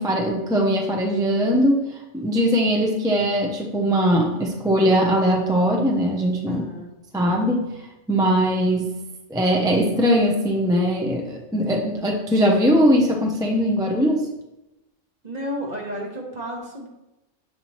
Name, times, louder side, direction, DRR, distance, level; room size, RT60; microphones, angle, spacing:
voice 1, 0.0-1.8 2.1-6.6 7.1-7.7 8.1-8.9 9.3-14.3, equal, 5° right, 1 dB, 0.4 m, -20 dB
voice 2, 6.5-6.9 15.2-16.9, equal, 35° right, 0 dB, 1.1 m, -32 dB
7.3 x 4.3 x 3.1 m, 0.95 s
omnidirectional pair, 1.3 m